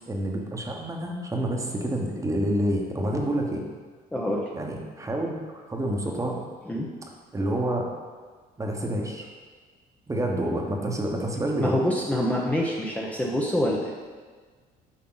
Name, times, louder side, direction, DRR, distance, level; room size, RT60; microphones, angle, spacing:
voice 1, 0.1-3.6 4.5-5.3 5.7-6.4 7.3-7.9 8.6-9.3 10.1-11.8, right 1 dB, 20° right, 0 dB, 1.2 m, -28 dB
voice 2, 4.1-4.5 6.7-6.9 11.6-13.9, left 1 dB, 10° left, -3 dB, 0.8 m, -26 dB
8.7 x 5.5 x 4.0 m, 1.5 s
cardioid pair, 110°, 17 cm